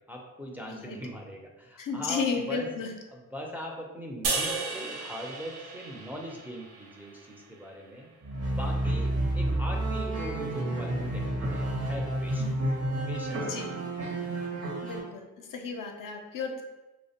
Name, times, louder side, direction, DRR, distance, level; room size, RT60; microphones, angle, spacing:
voice 1, 0.0-2.7 3.1-8.1 8.6-12.6 13.1-13.6, equal, 5° right, -1 dB, 0.4 m, -41 dB
voice 2, 1.8-2.9 12.4-12.5 13.5-13.7 14.8-16.6, left 5 dB, 65° left, 3 dB, 0.5 m, -33 dB
sound 1, 4.2-7.5, right 3 dB, 85° right, 0.5 m, -34 dB
sound 2, 8.2-15.0, right 1 dB, 45° right, 0.6 m, -30 dB
2.4 x 2.0 x 2.7 m, 1.1 s
cardioid pair, 50°, 35 cm